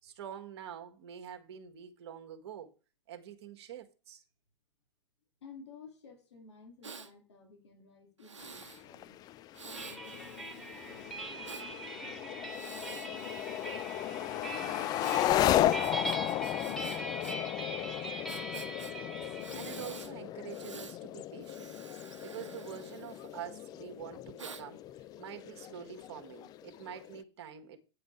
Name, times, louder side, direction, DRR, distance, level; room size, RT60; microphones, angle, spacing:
voice 1, 0.0-2.7 3.1-4.2 11.3-11.5 19.5-21.8 22.2-24.8 25.2-27.8, right 9 dB, 60° right, 1.6 m, -46 dB
voice 2, 5.4-9.2 9.6-13.6, left 4 dB, 70° left, 3.1 m, -55 dB
Breathing, 6.8-7.1 8.2-8.8 9.5-11.7 12.4-14.1 15.0-17.4 17.6-17.7 18.3-18.9 19.4-20.1 20.5-21.0 21.4-23.6 24.4-24.6, right 5 dB, 80° right, 0.9 m, -49 dB
sound 1, 8.4-27.2, left 12 dB, 25° left, 0.4 m, -35 dB
sound 2, 9.7-20.0, right 1 dB, ahead, 2.0 m, -42 dB
9.0 x 5.0 x 5.0 m
figure-of-eight pair, 95°, 15 cm